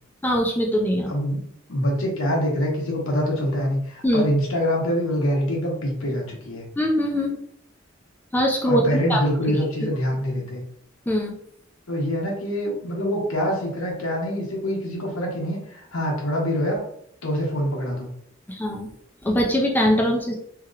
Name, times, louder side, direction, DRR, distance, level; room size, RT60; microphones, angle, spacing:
voice 1, 0.2-1.1 4.0-4.3 6.8-7.4 8.3-9.2 9.8-9.9 11.1-11.3 18.5-18.9 19.2-20.3, equal, 10° left, -1 dB, 0.4 m, -22 dB
voice 2, 1.1-6.6 8.7-10.6 11.9-16.8 17.2-18.1, equal, 90° left, -1 dB, 1.0 m, -25 dB
2.9 x 2.8 x 2.4 m, 0.69 s
head